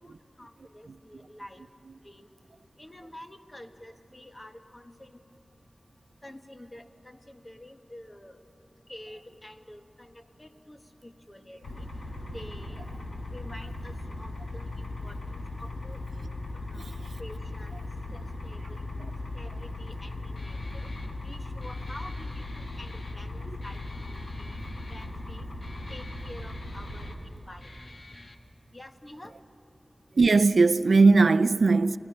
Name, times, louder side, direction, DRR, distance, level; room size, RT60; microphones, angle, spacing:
voice 1, 0.0-1.7 2.0-2.3 2.8-5.2 6.2-8.4 8.9-11.9 12.3-12.8 13.3-15.2 15.6-16.0 16.7-17.8 18.1-18.8 19.3-20.9 21.2-24.6 24.9-25.5 25.9-27.7 28.7-29.4, left 1 dB, 30° left, 1.3 m, -48 dB
sound 1, 11.6-27.1, left 2 dB, 85° left, 3.7 m, -38 dB
Guitar, 20.4-28.4, left 2 dB, 60° left, 1.4 m, -49 dB
voice 2, 30.2-32.0, right 3 dB, 80° right, 0.4 m, -19 dB
29.0 x 17.0 x 5.6 m
wide cardioid pair, 50°, 0 cm